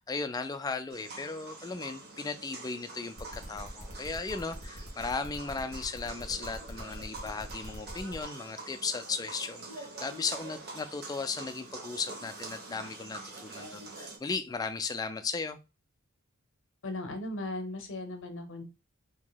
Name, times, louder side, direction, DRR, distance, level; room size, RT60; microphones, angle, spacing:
voice 1, 0.0-15.6, left 4 dB, 15° left, 0.3 m, -36 dB
sound 1, 0.9-14.2, right 3 dB, 50° right, 1.1 m, -46 dB
sound 2, 3.2-8.2, equal, 90° right, 1.3 m, -47 dB
voice 2, 16.8-18.6, left 2 dB, 60° left, 0.7 m, -37 dB
2.9 x 2.7 x 3.9 m
head